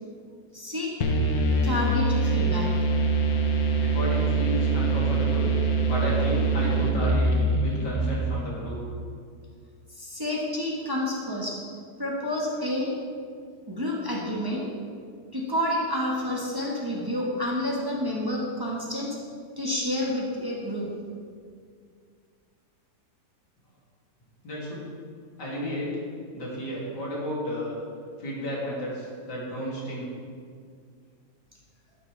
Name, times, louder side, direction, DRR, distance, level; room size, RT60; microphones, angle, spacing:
voice 1, 0.5-0.9 1.6-2.7 10.0-11.6 12.0-12.9 13.7-14.7 15.3-19.2 19.6-20.9, left 1 dB, 15° right, -3 dB, 1.3 m, -29 dB
sound 1, 1.0-8.7, right 3 dB, 65° left, 1.4 m, -24 dB
voice 2, 3.8-5.5 5.9-7.3 7.6-8.8 24.4-24.9 25.4-25.9 26.3-27.8 28.2-30.1, equal, 80° left, -5 dB, 3.3 m, -32 dB
11.5 x 10.0 x 3.3 m, 2.1 s
omnidirectional pair, 1.8 m